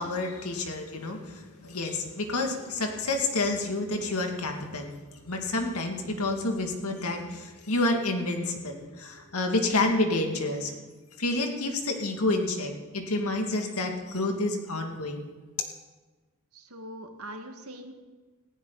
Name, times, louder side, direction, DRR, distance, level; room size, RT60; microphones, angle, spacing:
voice 1, 0.0-4.9 5.2-10.7 11.2-15.3, left 2 dB, 80° left, 3 dB, 2.3 m, -29 dB
voice 2, 16.5-17.9, right 1 dB, 80° right, 5 dB, 1.9 m, -42 dB
19.0 x 15.5 x 4.0 m, 1.3 s
head